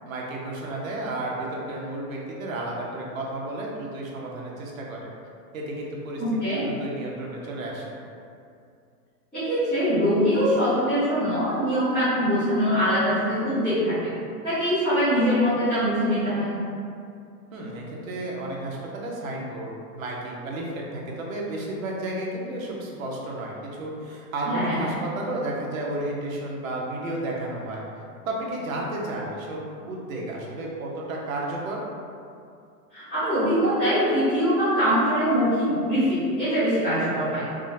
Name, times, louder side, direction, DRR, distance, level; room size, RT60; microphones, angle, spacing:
voice 1, 0.0-5.1 5.5-6.2 6.5-7.9 17.5-27.8 28.2-31.8, right 1 dB, 55° right, -2 dB, 0.7 m, -32 dB
voice 2, 6.2-6.6 9.3-14.1 14.4-16.6 24.5-24.8 32.9-37.4, equal, ahead, -22 dB, 0.7 m, -23 dB
3.5 x 2.1 x 2.6 m, 2.4 s
hypercardioid pair, 175°, 48 cm